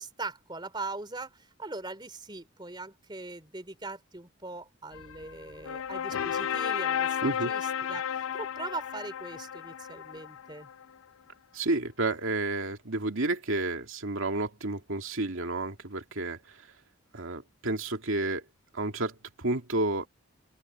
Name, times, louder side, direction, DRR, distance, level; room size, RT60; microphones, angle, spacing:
voice 1, 0.0-10.7, right 3 dB, 20° right, 3.7 m, -41 dB
sound 1, 4.9-10.8, left 8 dB, 80° left, 0.5 m, -33 dB
voice 2, 11.5-16.7 17.1-18.4 18.7-20.1, right 2 dB, 75° right, 2.3 m, -31 dB
open air
head